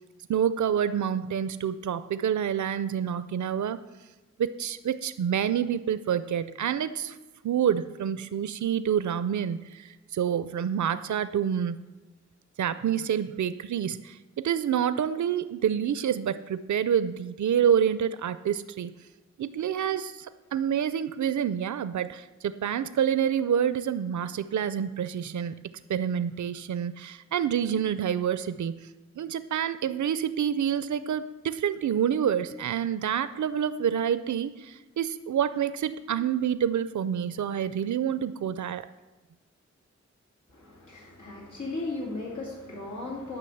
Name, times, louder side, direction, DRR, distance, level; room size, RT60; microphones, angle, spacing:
voice 1, 0.3-3.8 4.4-7.2 7.4-11.8 12.6-18.9 19.4-25.6 25.9-28.9 29.2-38.9, right 8 dB, 80° right, 14 dB, 0.5 m, -28 dB
voice 2, 40.5-43.4, left 2 dB, 85° left, -3 dB, 2.5 m, -36 dB
9.9 x 5.8 x 7.8 m, 1.2 s
wide cardioid pair, 85°, 29 cm